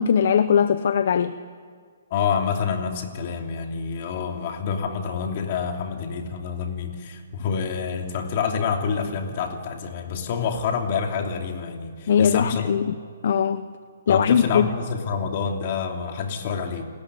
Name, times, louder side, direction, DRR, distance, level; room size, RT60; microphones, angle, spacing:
voice 1, 0.0-1.4 12.1-13.0 13.2-13.7 14.1-14.7, left 7 dB, 55° left, 0.8 m, -20 dB
voice 2, 2.1-12.6 14.1-16.8, left 6 dB, 40° left, 3.0 m, -27 dB
28.5 x 13.5 x 9.8 m
hypercardioid pair, 160°, 0 cm